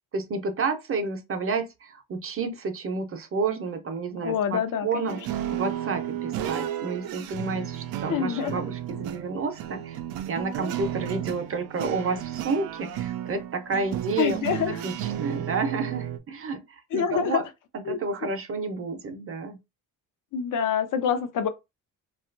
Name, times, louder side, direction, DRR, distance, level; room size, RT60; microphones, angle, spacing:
voice 1, 0.1-5.2 5.5-10.0 10.3-14.4 14.7-17.4 17.7-19.6, right 4 dB, 40° right, 0.6 m, -30 dB
voice 2, 4.2-5.2 8.1-8.6 14.2-14.8 16.9-17.4 17.9-18.0 20.3-21.5, left 8 dB, 65° left, 0.6 m, -26 dB
sound 1, 5.1-16.2, right 11 dB, 85° right, 0.5 m, -33 dB
2.8 x 2.4 x 2.5 m
cardioid pair, 100°, 34 cm